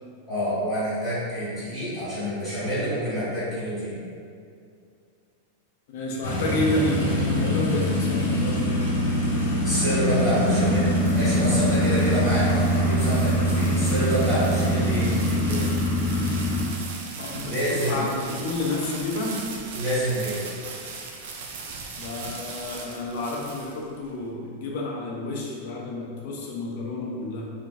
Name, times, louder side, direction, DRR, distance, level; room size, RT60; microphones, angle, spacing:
voice 1, 0.3-3.9 9.6-15.7 17.4-18.0 19.7-20.4, equal, ahead, -14 dB, 1.5 m, -27 dB
voice 2, 5.9-8.6 17.2-19.5 22.0-27.5, left 2 dB, 50° left, -2 dB, 0.5 m, -30 dB
sound 1, 6.2-16.6, equal, 80° left, 0.9 m, -23 dB
sound 2, 10.5-24.1, right 4 dB, 55° right, 0.4 m, -39 dB
3.8 x 2.6 x 2.5 m, 2.3 s
supercardioid pair, 175°, 0 cm